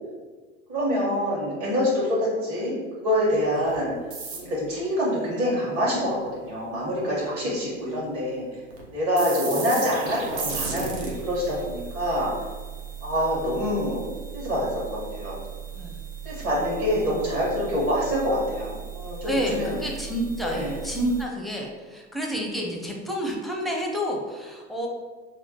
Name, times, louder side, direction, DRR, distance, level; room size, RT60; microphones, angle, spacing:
voice 1, 0.7-3.9 4.3-8.5 8.9-12.3 13.0-14.0 14.3-15.4 16.2-19.8 20.4-20.8, equal, 40° right, -7 dB, 1.3 m, -26 dB
sound 1, 3.7-3.8 4.1-4.7 8.7-8.8 9.2-21.2, right 6 dB, 55° right, 0.9 m, -36 dB
voice 2, 19.3-24.9, equal, ahead, -1 dB, 0.6 m, -29 dB
5.5 x 2.2 x 2.8 m, 1.4 s
figure-of-eight pair, 75°, 38 cm